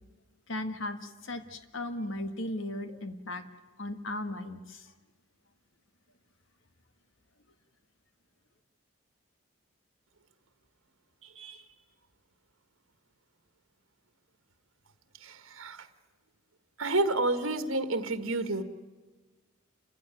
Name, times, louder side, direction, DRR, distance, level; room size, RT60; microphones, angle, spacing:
voice 1, 0.5-3.4 3.8-4.9, left 1 dB, 65° left, 8 dB, 1.8 m, -36 dB
voice 2, 15.2-15.8 16.8-18.6, right 2 dB, 70° right, 9 dB, 1.7 m, -30 dB
28.0 x 16.0 x 9.2 m, 1.3 s
head